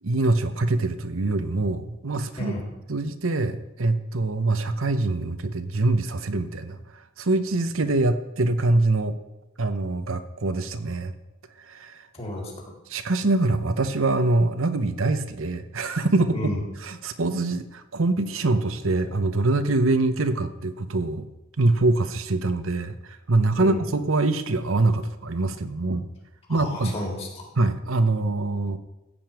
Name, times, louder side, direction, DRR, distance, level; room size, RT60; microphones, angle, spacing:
voice 1, 0.0-2.6 2.9-9.1 9.6-11.1 11.7-12.1 12.9-16.4 16.8-21.3 21.6-26.1 26.5-26.9 27.6-28.8, right 2 dB, 70° right, 10 dB, 0.9 m, -24 dB
voice 2, 12.2-12.7 16.3-16.6 23.6-23.8 26.5-27.5, left 1 dB, 30° left, 0 dB, 3.6 m, -32 dB
15.0 x 5.3 x 8.9 m, 0.96 s
head